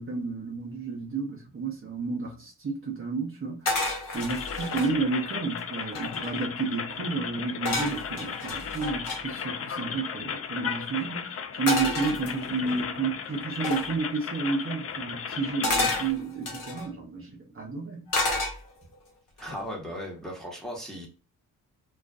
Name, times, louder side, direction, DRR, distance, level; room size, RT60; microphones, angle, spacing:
voice 1, 0.0-3.8 4.1-18.1, right 4 dB, 35° right, 0.7 m, -31 dB
sound 1, 3.7-4.9 5.5-5.6 5.8-6.4 7.7-9.2 11.7-12.7 13.6-13.9 15.6-16.9 18.1-18.9 19.4-19.7, left 2 dB, 60° left, 1.0 m, -30 dB
sound 2, 4.1-16.1, left 7 dB, 40° left, 0.4 m, -35 dB
voice 2, 19.4-21.1, equal, ahead, 0.9 m, -37 dB
2.4 x 2.3 x 2.3 m
cardioid pair, 90°, 36 cm